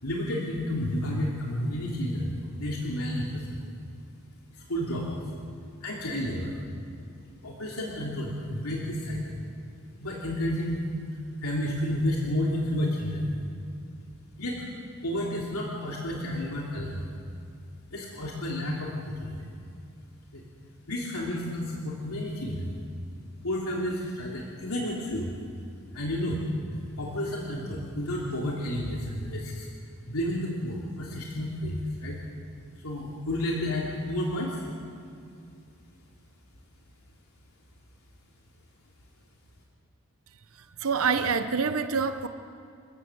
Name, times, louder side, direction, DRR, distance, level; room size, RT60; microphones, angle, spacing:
voice 1, 0.0-3.5 4.5-5.3 5.8-6.5 7.4-9.4 10.0-10.8 11.4-13.3 14.4-14.6 15.0-17.0 17.9-19.4 20.3-20.4 20.9-22.7 23.4-25.3 25.9-26.4 26.7-29.7 30.1-32.2 32.8-34.6, left 1 dB, 80° left, -3 dB, 2.9 m, -31 dB
voice 2, 40.8-42.3, right 5 dB, 70° right, 9 dB, 0.9 m, -26 dB
29.5 x 13.0 x 7.9 m, 2.4 s
head